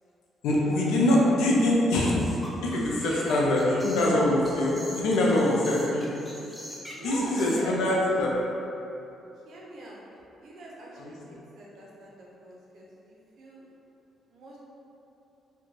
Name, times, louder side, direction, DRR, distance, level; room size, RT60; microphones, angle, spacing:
voice 1, 0.4-2.2 2.6-6.2 7.0-8.3 11.0-11.1, left 1 dB, 90° left, -4 dB, 0.5 m, -24 dB
sound 1, 2.2-7.6, equal, 5° left, 0.5 m, -43 dB
voice 2, 3.0-3.9 6.9-8.3 9.4-10.0 10.4-13.6 14.3-14.6, right 1 dB, 70° right, -4 dB, 0.6 m, -42 dB
2.5 x 2.2 x 3.1 m, 2.9 s
cardioid pair, 90°, 0 cm